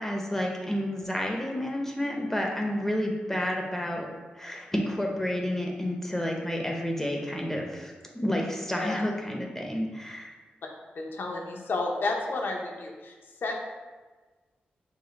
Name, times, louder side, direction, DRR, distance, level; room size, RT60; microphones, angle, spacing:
voice 1, 0.0-4.1 4.3-7.9 8.2-10.3, left 1 dB, 10° left, 0 dB, 0.7 m, -30 dB
voice 2, 10.9-13.1 13.4-13.6, left 3 dB, 70° left, 1 dB, 0.7 m, -31 dB
5.2 x 2.2 x 4.0 m, 1.3 s
cardioid pair, 55°, 4 cm